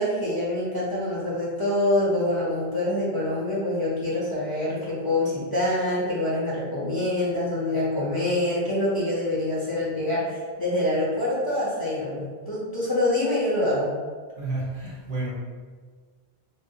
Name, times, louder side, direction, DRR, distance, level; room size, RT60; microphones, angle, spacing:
voice 1, 0.0-13.9, left 1 dB, 20° left, -9 dB, 0.9 m, -25 dB
voice 2, 14.4-15.3, right 2 dB, 60° right, -5 dB, 0.8 m, -30 dB
2.6 x 2.4 x 3.6 m, 1.5 s
omnidirectional pair, 1.1 m